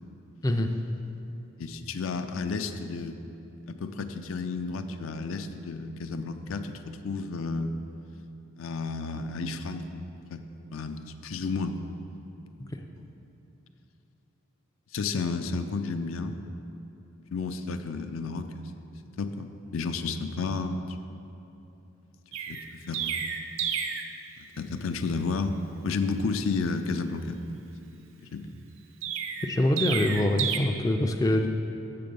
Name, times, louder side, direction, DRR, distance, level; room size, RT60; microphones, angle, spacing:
voice 1, 1.6-3.2 3.7-7.8 8.6-11.9 13.0-13.2 14.9-16.4 17.3-18.7 19.2-21.0 22.5-23.2 24.6-25.6 25.8-27.4 28.3-28.5, left 4 dB, 75° left, 8 dB, 0.5 m, -32 dB
Chirp tweet, 22.3-24.1 29.0-30.6, right 7 dB, 70° right, 0.5 m, -31 dB
voice 2, 29.4-31.5, left 1 dB, 15° left, 3 dB, 0.3 m, -24 dB
7.6 x 6.9 x 5.3 m, 3.0 s
head